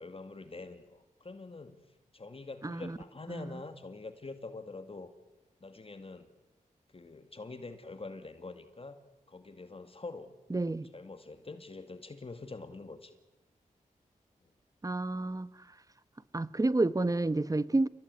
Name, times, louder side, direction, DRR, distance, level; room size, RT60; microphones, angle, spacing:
voice 1, 0.0-1.8 2.1-5.1 5.6-6.3 6.9-9.0 9.3-13.2 14.4-14.5, left 3 dB, 40° left, 2.2 m, -45 dB
voice 2, 2.6-3.0 3.3-3.5 10.5-10.9 14.8-15.5 16.3-17.9, right 2 dB, 25° right, 1.1 m, -30 dB
29.0 x 18.0 x 9.6 m
cardioid pair, 60°, 14 cm